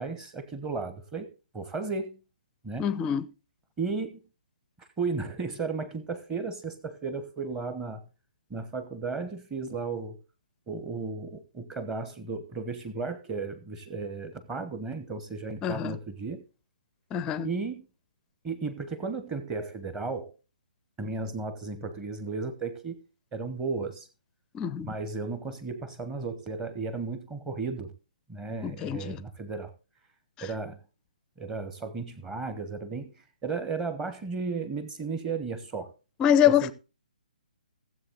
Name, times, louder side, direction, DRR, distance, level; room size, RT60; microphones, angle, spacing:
voice 1, 0.0-2.2 2.6-2.9 3.8-4.2 4.8-8.0 8.5-10.2 10.7-16.4 17.4-17.9 18.4-20.3 21.0-23.0 23.3-24.1 24.8-27.9 28.3-29.7 30.4-30.8 31.4-33.1 33.4-35.9 36.4-36.7, right 4 dB, 15° right, 1.1 m, -34 dB
voice 2, 2.8-3.3 15.6-16.0 17.1-17.5 24.5-24.9 28.6-29.2 36.2-36.7, left 9 dB, 15° left, 0.5 m, -25 dB
16.0 x 7.8 x 3.8 m
figure-of-eight pair, 130°, 5 cm